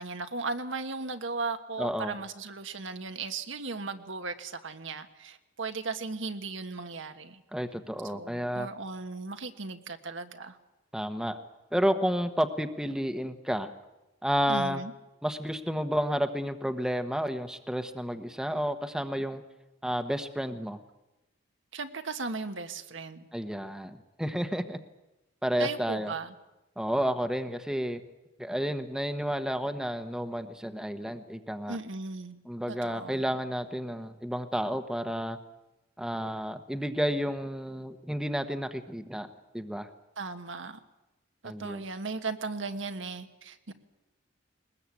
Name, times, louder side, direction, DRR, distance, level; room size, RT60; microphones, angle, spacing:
voice 1, 0.0-7.4 8.1-10.6 14.5-14.9 21.7-23.3 25.6-26.3 31.7-32.4 32.8-33.2 40.2-40.8 41.4-43.7, right 3 dB, 70° right, 8 dB, 1.5 m, -36 dB
voice 2, 1.8-2.1 7.5-8.7 10.9-11.4 11.7-13.7 14.2-14.8 15.2-19.4 19.8-20.8 23.3-24.8 25.4-26.1 26.8-28.0 28.4-31.8 32.4-35.4 36.0-39.3 39.5-39.9 41.4-41.8, equal, 5° right, 8 dB, 1.1 m, -31 dB
21.5 x 20.0 x 8.5 m, 1.0 s
head